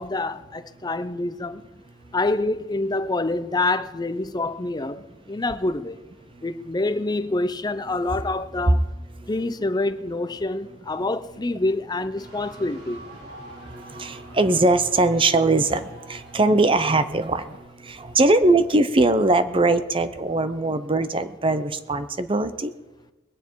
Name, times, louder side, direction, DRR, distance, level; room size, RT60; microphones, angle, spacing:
voice 1, 0.0-1.6 2.1-6.0 6.4-8.8 9.3-13.0, left 2 dB, 25° left, 0.6 m, -26 dB
sound 1, 12.2-17.6, right 1 dB, 60° right, 5.2 m, -45 dB
voice 2, 13.4-22.7, right 2 dB, 30° right, 0.7 m, -21 dB
21.0 x 9.4 x 4.6 m
head